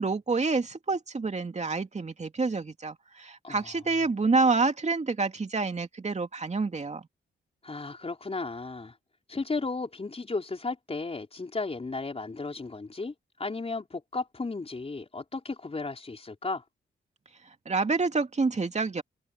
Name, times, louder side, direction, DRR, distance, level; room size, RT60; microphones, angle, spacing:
voice 1, 0.0-7.0 17.7-19.0, right 4 dB, 35° right, 2.7 m, -28 dB
voice 2, 7.6-8.9 9.3-13.1 13.4-16.6, left 3 dB, 30° left, 4.9 m, -34 dB
cardioid pair, 80°, 20 cm